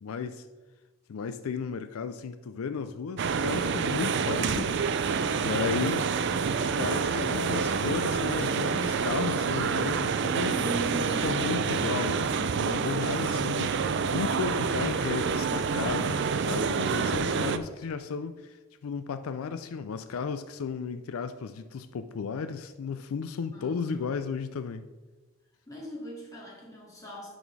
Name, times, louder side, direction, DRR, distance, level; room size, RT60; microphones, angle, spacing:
voice 1, 0.0-0.5 1.1-6.1 6.8-10.6 11.2-18.6 18.8-24.8, left 5 dB, 80° left, 0.4 m, -34 dB
sound 1, 3.2-17.6, right 5 dB, 55° right, 0.4 m, -28 dB
voice 2, 10.5-11.5 23.5-24.1 25.7-27.3, equal, 15° left, 2.3 m, -39 dB
11.0 x 4.2 x 4.6 m
head